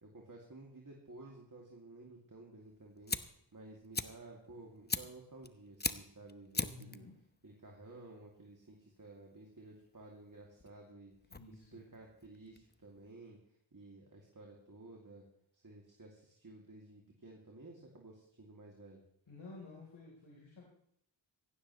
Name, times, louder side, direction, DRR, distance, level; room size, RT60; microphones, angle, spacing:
voice 1, 0.0-3.2 3.5-7.0 7.4-13.4 13.7-15.2 15.5-19.0, right 2 dB, 45° right, -1 dB, 2.6 m, -54 dB
Fire, 2.6-13.1, left 3 dB, 20° left, 0.7 m, -43 dB
voice 2, 6.6-7.2 11.3-11.8 19.3-20.6, left 3 dB, 75° left, -4 dB, 3.8 m, -53 dB
17.5 x 15.5 x 3.2 m, 0.67 s
cardioid pair, 45°, 46 cm